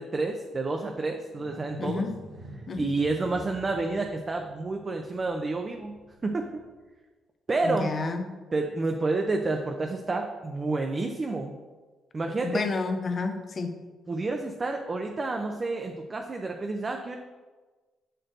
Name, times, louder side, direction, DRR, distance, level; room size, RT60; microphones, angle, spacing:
voice 1, 0.0-2.0 2.8-5.9 6.2-6.6 7.5-7.9 8.5-11.5 12.1-12.6 14.1-17.2, right 3 dB, 30° right, 3 dB, 0.5 m, -29 dB
sound 1, 1.3-6.7 9.8-9.9, right 1 dB, 75° right, 1.1 m, -47 dB
voice 2, 1.8-2.2 2.7-2.9 7.6-8.3 12.4-13.7, left 3 dB, 40° left, 7 dB, 0.6 m, -30 dB
6.3 x 4.5 x 3.8 m, 1.3 s
cardioid pair, 90°, 0 cm